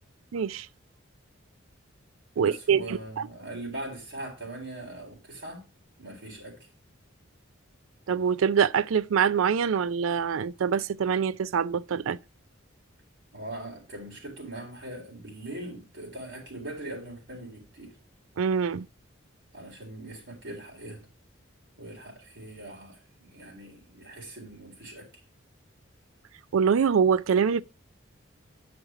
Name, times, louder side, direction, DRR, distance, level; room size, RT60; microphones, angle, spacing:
voice 1, 0.3-0.7 2.4-3.3 8.1-12.2 18.4-18.9 26.5-27.6, right 7 dB, 85° right, 0.4 m, -24 dB
voice 2, 2.4-5.6 6.0-6.6 13.3-17.9 19.5-21.0 21.8-25.1, right 1 dB, 65° right, 4.1 m, -41 dB
10.0 x 5.3 x 4.7 m
head